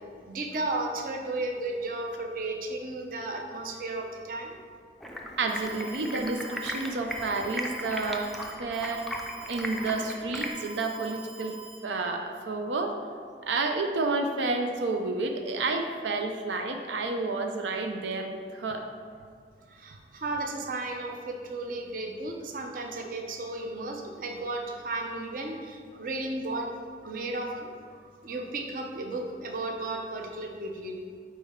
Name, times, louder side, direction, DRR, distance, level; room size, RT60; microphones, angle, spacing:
voice 1, 0.3-4.6 19.7-26.7 27.0-27.7 28.2-31.0, right 2 dB, 50° right, 2 dB, 0.6 m, -34 dB
Stream, 5.0-10.5, equal, ahead, 0.4 m, -37 dB
voice 2, 5.4-8.3 8.6-9.0 9.5-11.6 11.8-12.9 13.4-18.8 25.9-26.0, right 3 dB, 90° right, 4 dB, 0.5 m, -30 dB
Alarm, 5.5-11.8, right 4 dB, 25° right, 1.1 m, -45 dB
8.4 x 4.3 x 3.7 m, 2.1 s
head